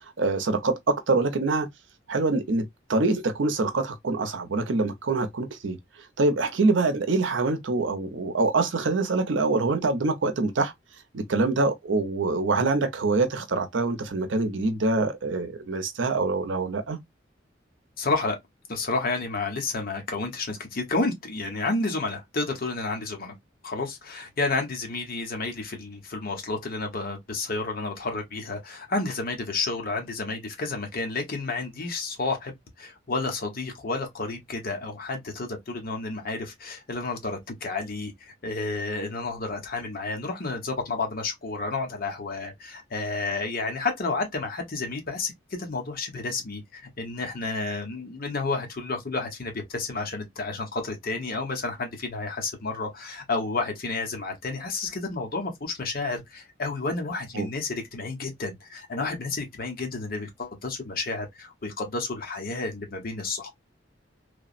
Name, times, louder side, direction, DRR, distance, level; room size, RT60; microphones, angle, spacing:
voice 1, 0.2-1.7 2.1-2.6 2.9-5.8 6.2-10.7 11.1-17.0 57.3-57.5, right 3 dB, 85° right, 0.6 m, -25 dB
voice 2, 18.0-18.4 18.7-23.3 23.6-63.5, left 3 dB, 50° left, 1.0 m, -31 dB
3.3 x 2.1 x 2.4 m
head